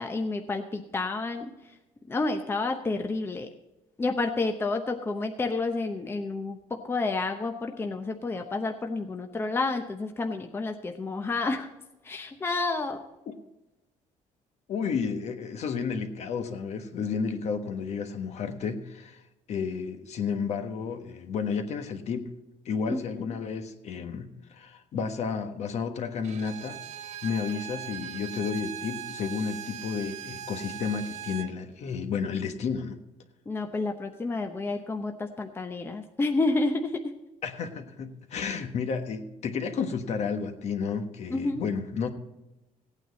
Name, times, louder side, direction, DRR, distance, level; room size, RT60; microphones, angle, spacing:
voice 1, 0.0-1.7 2.1-3.5 4.0-11.7 12.0-13.0 22.9-23.4 33.5-37.1 41.3-41.6, left 3 dB, 15° left, 5 dB, 0.8 m, -30 dB
voice 2, 14.7-19.2 19.5-22.3 22.6-26.8 27.2-33.0 37.4-42.1, left 6 dB, 50° left, 7 dB, 1.3 m, -32 dB
Bowed string instrument, 26.2-31.5, right 10 dB, 55° right, 0.7 m, -40 dB
16.5 x 9.1 x 4.1 m, 0.98 s
cardioid pair, 145°, 14 cm